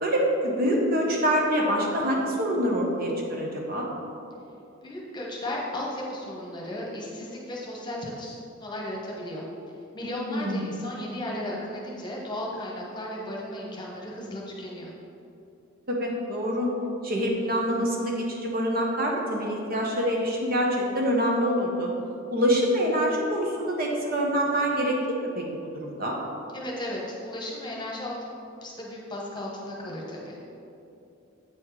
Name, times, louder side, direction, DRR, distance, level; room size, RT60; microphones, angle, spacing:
voice 1, 0.0-3.9 10.3-10.7 15.9-16.7 17.0-21.9 22.3-25.0 25.2-25.4 25.7-26.2, equal, 50° right, -1 dB, 1.0 m, -25 dB
voice 2, 4.8-9.5 9.9-14.9 26.5-28.1 28.6-30.4, left 1 dB, 25° left, -3 dB, 1.2 m, -35 dB
8.5 x 4.3 x 4.8 m, 2.7 s
head